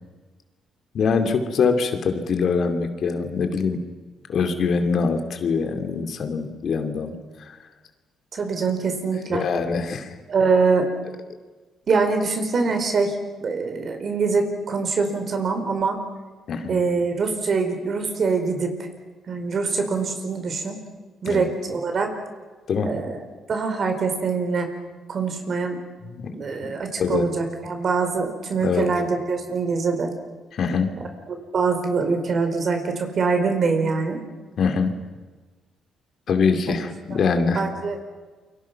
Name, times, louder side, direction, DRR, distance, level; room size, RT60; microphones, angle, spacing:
voice 1, 0.9-3.8 4.3-7.6 9.3-10.1 16.5-16.8 21.3-21.5 22.7-22.9 26.1-26.3 27.0-27.2 28.6-28.8 30.5-30.9 34.6-34.9 36.3-37.6, left 5 dB, 60° left, 6 dB, 2.8 m, -23 dB
voice 2, 8.3-9.4 10.3-10.9 11.9-13.2 13.4-16.0 16.7-18.9 19.3-20.8 21.2-22.1 22.8-23.2 23.5-24.7 25.1-25.8 26.3-30.1 31.3-34.2 36.7-36.8 37.5-38.0, right 4 dB, 50° right, 6 dB, 4.7 m, -24 dB
28.5 x 24.5 x 6.0 m, 1.3 s
cardioid pair, 90°, 0 cm